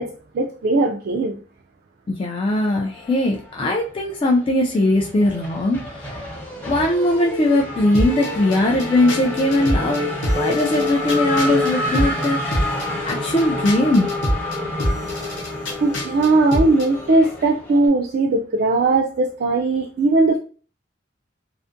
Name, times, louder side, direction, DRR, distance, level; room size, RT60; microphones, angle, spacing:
voice 1, 0.0-1.4 15.8-20.4, right 2 dB, 55° right, 0 dB, 0.3 m, -19 dB
voice 2, 2.1-6.1 6.6-12.4 13.0-14.1, left 1 dB, 30° left, 0 dB, 0.3 m, -20 dB
Race car auto racing / Accelerating revving vroom, 2.9-3.9 4.2-17.9, left 2 dB, 10° left, 0.8 m, -28 dB
sound 1, 7.9-16.9, equal, 85° left, 0.8 m, -27 dB
2.5 x 2.4 x 2.5 m, 0.40 s
head